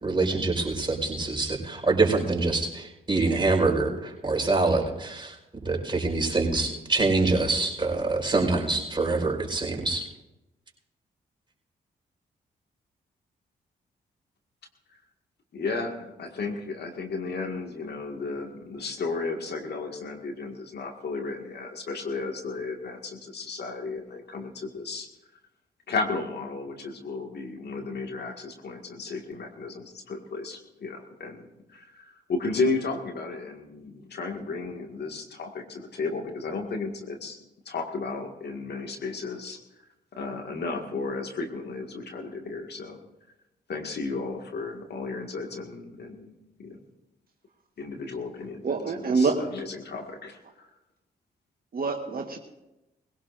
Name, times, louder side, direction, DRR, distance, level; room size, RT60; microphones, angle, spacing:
voice 1, 0.0-5.3 5.6-10.0, right 3 dB, 25° right, 0 dB, 4.5 m, -25 dB
voice 2, 15.5-25.1 25.9-37.4 37.7-39.6 40.2-43.0 43.7-46.3 46.6-46.8 47.8-50.7, left 3 dB, 60° left, 3 dB, 2.0 m, -34 dB
voice 3, 48.6-49.4 51.7-52.4, right 4 dB, 50° right, 3 dB, 1.4 m, -26 dB
20.5 x 16.5 x 2.6 m, 0.96 s
hypercardioid pair, 45°, 19 cm